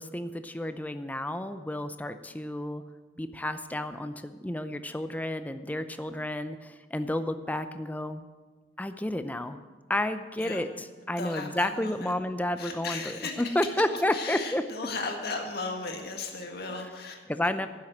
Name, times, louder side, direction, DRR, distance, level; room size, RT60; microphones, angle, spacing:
voice 1, 0.0-2.8 3.2-8.2 8.8-9.6 9.9-14.6 16.7-16.9 17.3-17.7, left 1 dB, 10° left, 10 dB, 0.5 m, -31 dB
voice 2, 10.4-10.7 11.2-12.1 12.6-13.6 14.1-17.5, left 3 dB, 60° left, 3 dB, 1.8 m, -36 dB
11.0 x 7.5 x 8.9 m, 1.4 s
head